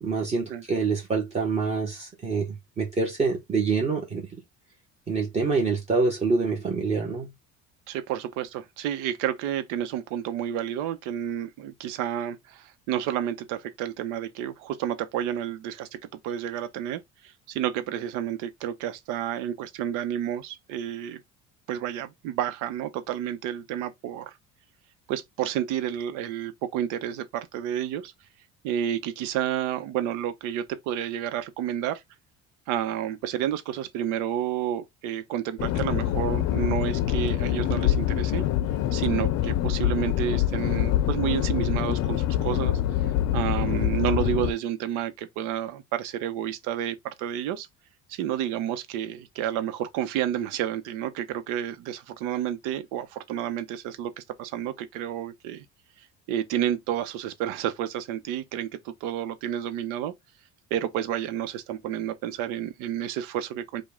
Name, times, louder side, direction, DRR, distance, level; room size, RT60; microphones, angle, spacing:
voice 1, 0.0-4.3 5.1-7.3, right 4 dB, 20° right, 1.1 m, -26 dB
voice 2, 7.9-16.0 16.2-21.2 21.7-24.4 25.1-28.1 28.6-32.0 32.7-38.5 38.9-47.7 48.1-55.6 56.0-60.1 60.7-63.8, right 10 dB, 80° right, 0.9 m, -30 dB
sound 1, 35.6-44.5, left 13 dB, 55° left, 0.6 m, -25 dB
5.2 x 2.3 x 3.7 m
cardioid pair, 170°, 30 cm